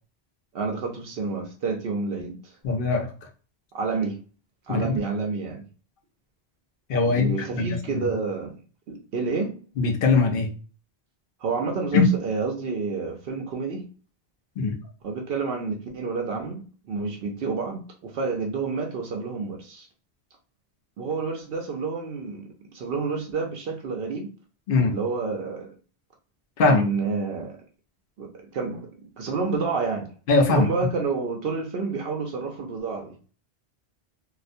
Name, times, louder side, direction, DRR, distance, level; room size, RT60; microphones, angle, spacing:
voice 1, 0.5-2.5 3.7-4.2 4.7-5.6 7.0-8.6 8.9-9.6 11.4-13.8 15.0-19.9 21.0-24.3 24.9-25.8 26.7-27.6 28.2-28.9 29.2-30.1 30.5-33.2, right 4 dB, 70° right, 0.7 m, -29 dB
voice 2, 2.6-3.1 4.7-5.0 6.9-8.1 9.8-10.5 11.9-12.1 14.6-14.7 24.7-24.9 26.6-26.8 30.3-30.7, left 4 dB, 60° left, 0.7 m, -21 dB
2.4 x 2.1 x 2.5 m
omnidirectional pair, 1.1 m